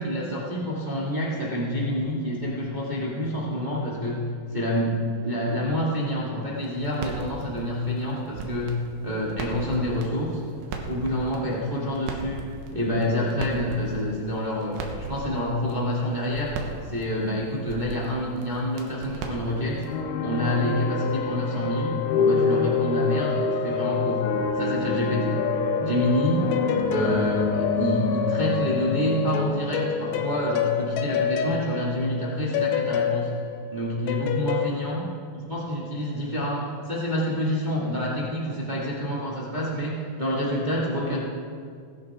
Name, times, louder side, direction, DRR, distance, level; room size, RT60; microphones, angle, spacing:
voice 1, 0.0-10.4 10.9-12.4 12.7-16.6 16.8-19.8 20.2-24.2 24.5-25.4 25.8-26.5 26.9-33.3 33.7-35.0 35.5-41.2, equal, 40° right, -6 dB, 0.6 m, -27 dB
sound 1, 6.6-20.0, right 4 dB, 80° right, 3.4 m, -39 dB
sound 2, 19.8-31.5, left 5 dB, 75° left, 2.7 m, -27 dB
sound 3, 25.5-28.4 29.3-34.7, left 8 dB, 90° left, 3.0 m, -29 dB
20.5 x 11.5 x 3.7 m, 2.2 s
omnidirectional pair, 4.9 m